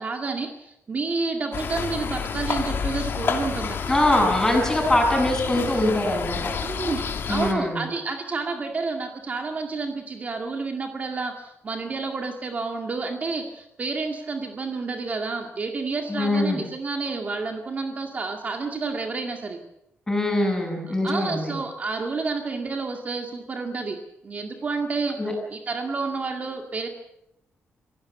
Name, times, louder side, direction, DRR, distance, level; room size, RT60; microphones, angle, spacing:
voice 1, 0.0-3.9 6.6-19.6 20.9-24.0 24.2-26.9, right 4 dB, 35° right, 4 dB, 2.0 m, -30 dB
sound 1, 1.5-7.5, left 6 dB, 55° left, 2.8 m, -29 dB
voice 2, 3.9-6.4 7.3-7.9 16.1-16.6 20.1-21.6 25.2-25.3, left 1 dB, 10° left, 1 dB, 7.8 m, -23 dB
26.5 x 17.0 x 7.0 m, 0.83 s
wide cardioid pair, 140°, 4 cm